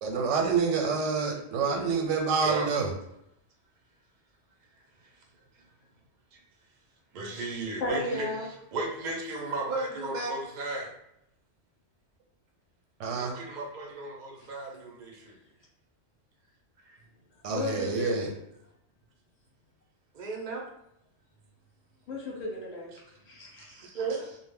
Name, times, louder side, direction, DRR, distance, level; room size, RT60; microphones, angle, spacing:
voice 1, 0.0-2.9 13.0-13.3 17.4-18.3, right 5 dB, 85° right, 2 dB, 0.9 m, -27 dB
voice 2, 2.4-2.7 5.0-5.1 6.3-6.4 7.1-10.9 13.2-15.4 16.8-17.0 20.1-20.6 23.6-24.4, right 2 dB, 55° right, 0 dB, 0.5 m, -35 dB
voice 3, 7.8-8.5 17.4-18.3 22.1-22.9 23.3-23.8, left 2 dB, 40° left, -3 dB, 0.8 m, -34 dB
2.1 x 2.0 x 3.5 m, 0.80 s
omnidirectional pair, 1.2 m